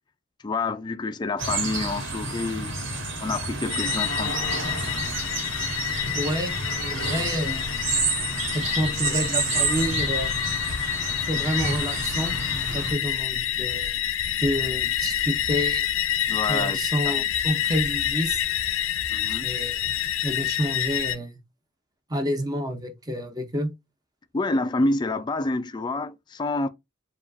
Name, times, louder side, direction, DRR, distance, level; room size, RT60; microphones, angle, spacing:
voice 1, 0.4-2.8 3.2-4.5 16.3-16.8 17.1-17.2 19.1-19.5 24.3-26.7, left 2 dB, 20° left, 0.3 m, -28 dB
sound 1, 1.4-12.9, right 3 dB, 65° right, 1.7 m, -29 dB
sound 2, 3.7-21.2, left 11 dB, 90° left, 0.5 m, -28 dB
voice 2, 6.1-6.5 6.8-7.7 8.5-10.3 11.3-12.4 12.7-13.9 14.4-15.9 16.5-18.4 19.4-20.0 20.2-21.4 22.1-23.7, equal, 20° right, 0.7 m, -29 dB
7.0 x 2.4 x 2.6 m
head